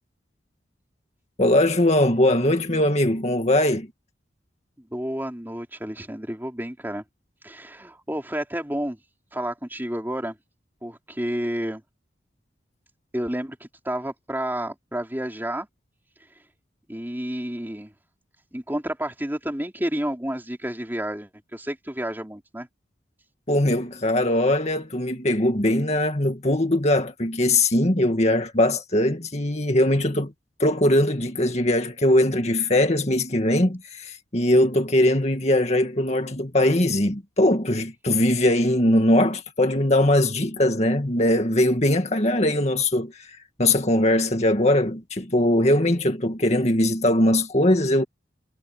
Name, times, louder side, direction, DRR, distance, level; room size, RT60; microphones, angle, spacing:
voice 1, 1.4-3.9 23.5-30.3 30.6-48.0, left 1 dB, 35° left, 2.1 m, -21 dB
voice 2, 4.8-7.0 7.4-9.0 9.3-10.4 10.8-11.8 13.1-15.7 16.9-17.9 18.5-22.7, right 1 dB, 10° right, 3.5 m, -30 dB
head